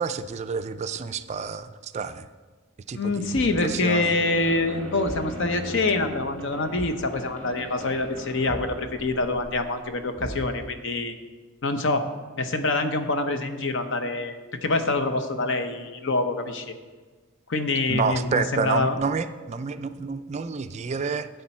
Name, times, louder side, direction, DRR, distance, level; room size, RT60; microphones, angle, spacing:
voice 1, 0.0-2.3 2.9-4.1 17.9-21.3, right 5 dB, 30° right, 10 dB, 0.3 m, -29 dB
voice 2, 2.9-11.1 11.6-12.0 12.4-16.7 17.5-19.0, left 2 dB, 60° left, 8 dB, 0.8 m, -25 dB
Thump thud, 3.3-3.8 5.0-5.4 6.7-7.1 8.5-8.8 10.2-10.7, equal, 25° left, 0.9 m, -38 dB
sound 1, 4.0-10.1, right 1 dB, 10° left, 1.1 m, -40 dB
11.5 x 8.0 x 4.4 m, 1.4 s
head